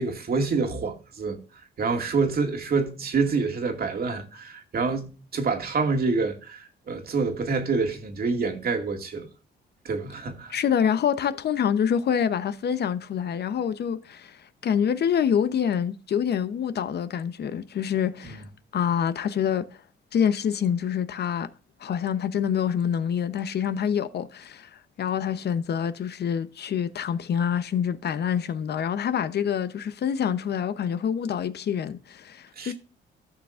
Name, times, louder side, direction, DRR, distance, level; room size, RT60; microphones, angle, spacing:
voice 1, 0.0-1.4 1.8-9.3 9.8-10.6 18.2-18.4 32.6-32.7, right 4 dB, 50° right, 2.2 m, -27 dB
voice 2, 10.5-18.4 18.7-19.7 20.1-21.5 21.8-32.7, left 8 dB, 55° left, 0.8 m, -26 dB
15.5 x 6.1 x 2.5 m
cardioid pair, 90°, 20 cm